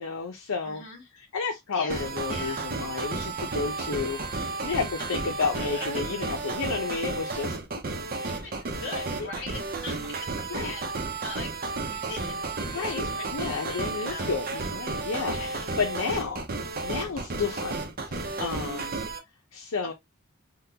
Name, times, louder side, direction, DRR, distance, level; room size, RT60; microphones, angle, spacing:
voice 1, 0.0-0.8 1.2-7.6 10.5-10.7 12.7-16.4 16.8-17.8 18.0-19.0 19.5-19.9, left 4 dB, 90° left, 0.6 m, -31 dB
voice 2, 0.6-1.0 1.7-2.7 5.5-5.9 8.3-11.5 11.9-12.4 12.7-13.7 14.0-14.3 15.1-15.7, left 3 dB, 60° left, 1.2 m, -41 dB
sound 1, 1.9-19.2, right 3 dB, 45° right, 0.7 m, -33 dB
3.7 x 2.3 x 2.8 m
head